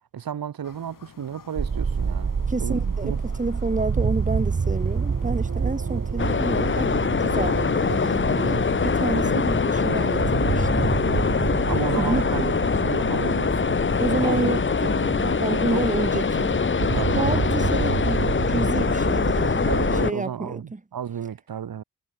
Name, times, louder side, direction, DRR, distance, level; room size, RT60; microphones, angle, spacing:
voice 1, 0.1-2.3 2.6-3.2 8.4-8.5 9.2-9.5 11.7-13.8 14.2-16.1 16.9-17.5 19.6-21.8, right 9 dB, 85° right, 4.1 m, -33 dB
sound 1, 0.6-9.4, left 7 dB, 70° left, 6.4 m, -50 dB
sound 2, 1.6-20.0, right 5 dB, 40° right, 1.8 m, -28 dB
voice 2, 2.5-10.9 12.0-12.3 14.0-15.0 15.4-16.6 17.0-19.7 20.0-20.8, right 3 dB, 20° right, 3.4 m, -29 dB
sound 3, 6.2-20.1, left 5 dB, 35° left, 1.1 m, -23 dB
cardioid pair, 80°, 34 cm